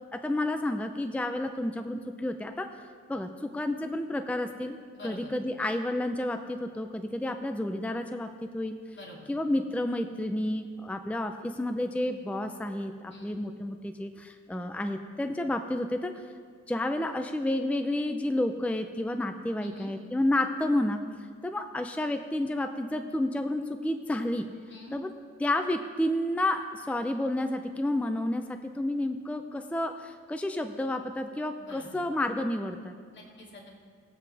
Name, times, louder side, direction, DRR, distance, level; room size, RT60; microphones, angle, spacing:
voice 1, 0.1-2.7 3.1-4.8 5.0-8.8 9.3-16.2 16.7-21.0 21.4-24.5 24.9-25.1 25.4-32.9, left 1 dB, 5° left, 7 dB, 0.7 m, -30 dB
voice 2, 4.9-5.3 8.9-9.3 13.1-13.4 19.6-19.9 24.7-25.0 31.6-32.0 33.1-33.8, left 1 dB, 40° left, -4 dB, 3.0 m, -46 dB
20.5 x 7.5 x 3.5 m, 2.1 s
cardioid pair, 80°, 30 cm